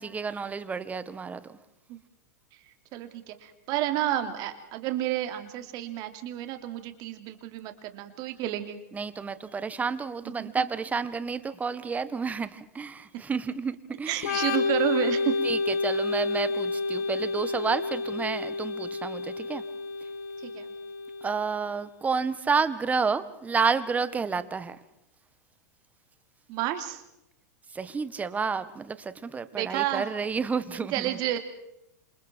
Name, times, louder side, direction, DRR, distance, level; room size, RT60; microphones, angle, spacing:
voice 1, 0.0-1.5 8.9-14.4 15.4-19.6 21.2-24.8 27.7-31.4, right 5 dB, 15° right, 13 dB, 1.6 m, -30 dB
voice 2, 2.9-8.8 10.4-10.6 14.1-15.4 20.4-20.7 26.5-27.0 29.5-30.1 30.7-31.4, right 13 dB, 45° right, 7 dB, 3.2 m, -31 dB
Organ, 14.2-21.7, left 3 dB, 65° left, 2.4 m, -30 dB
28.0 x 27.5 x 4.6 m, 0.82 s
hypercardioid pair, 110°, 9 cm